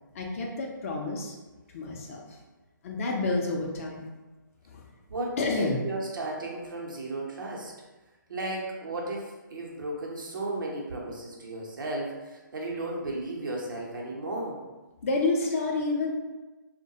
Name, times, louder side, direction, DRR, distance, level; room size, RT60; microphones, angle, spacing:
voice 1, 0.1-1.4 1.7-2.4 2.8-4.1 4.7-4.8 5.4-5.8 15.0-16.1, left 3 dB, 40° left, 0 dB, 0.5 m, -29 dB
voice 2, 5.1-7.7 8.3-14.6, right 2 dB, 75° right, -2 dB, 0.7 m, -34 dB
2.2 x 2.1 x 2.7 m, 1.1 s
figure-of-eight pair, 145°, 11 cm